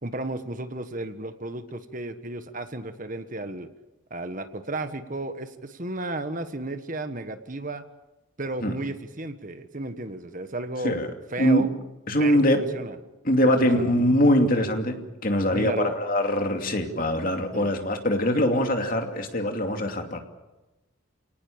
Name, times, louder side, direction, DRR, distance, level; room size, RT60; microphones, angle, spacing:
voice 1, 0.0-3.7 4.1-7.8 8.4-11.0 11.3-11.7 12.2-13.0 13.6-13.9 15.5-15.9 17.5-17.7, right 2 dB, 40° right, 9 dB, 1.4 m, -33 dB
voice 2, 12.1-12.6 13.2-20.2, equal, 40° left, 4 dB, 2.7 m, -23 dB
29.0 x 19.0 x 8.8 m, 1.1 s
head